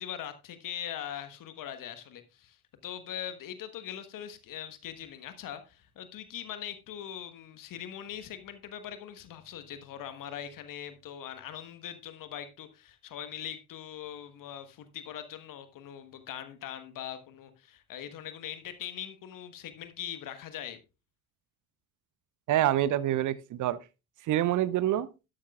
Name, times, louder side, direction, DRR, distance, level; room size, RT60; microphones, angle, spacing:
voice 1, 0.0-2.6 2.8-20.8, left 10 dB, 50° left, 1.3 m, -41 dB
voice 2, 22.5-23.8 24.2-25.1, right 13 dB, 45° right, 0.7 m, -26 dB
12.0 x 11.0 x 2.4 m
figure-of-eight pair, 50°, 43 cm